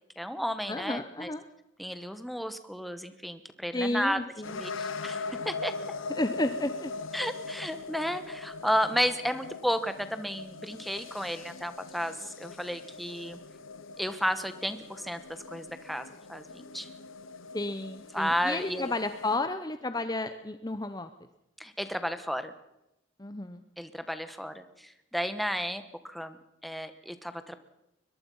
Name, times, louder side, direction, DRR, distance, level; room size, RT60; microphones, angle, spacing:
voice 1, 0.2-1.3 1.8-4.2 4.5-5.7 7.1-13.4 14.0-16.9 18.1-18.9 21.6-22.5 23.8-27.6, equal, ahead, 10 dB, 1.2 m, -33 dB
voice 2, 0.7-1.4 3.7-4.6 6.1-6.9 17.5-21.1 23.2-23.6, left 2 dB, 20° left, 10 dB, 0.8 m, -32 dB
sound 1, 4.4-19.4, left 4 dB, 90° left, 1.1 m, -41 dB
22.5 x 21.5 x 5.6 m, 0.88 s
head